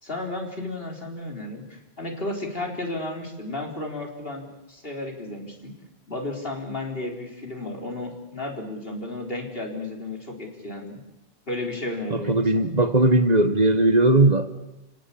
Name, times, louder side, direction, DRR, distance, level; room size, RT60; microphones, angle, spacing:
voice 1, 0.0-5.7 6.1-11.0 11.5-12.7, left 2 dB, 65° left, 2 dB, 4.6 m, -33 dB
voice 2, 12.1-14.5, right 2 dB, 40° right, 10 dB, 1.6 m, -19 dB
29.0 x 18.0 x 8.6 m, 0.93 s
omnidirectional pair, 1.1 m